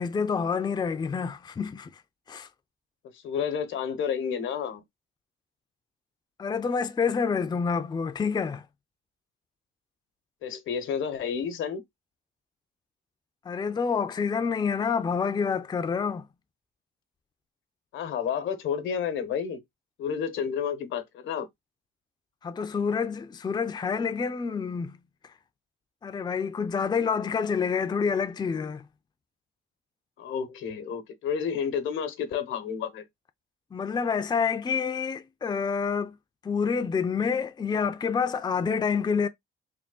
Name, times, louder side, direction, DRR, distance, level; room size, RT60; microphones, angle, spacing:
voice 1, 0.0-1.9 2.3-2.5 6.4-8.6 13.5-16.3 22.4-25.0 26.0-28.8 33.7-36.2 36.4-39.3, left 6 dB, 20° left, 0.4 m, -28 dB
voice 2, 3.1-4.8 10.4-11.8 17.9-19.6 20.0-21.5 30.2-33.0, left 7 dB, 80° left, 1.0 m, -30 dB
3.5 x 2.3 x 3.8 m
cardioid pair, 90°, 20 cm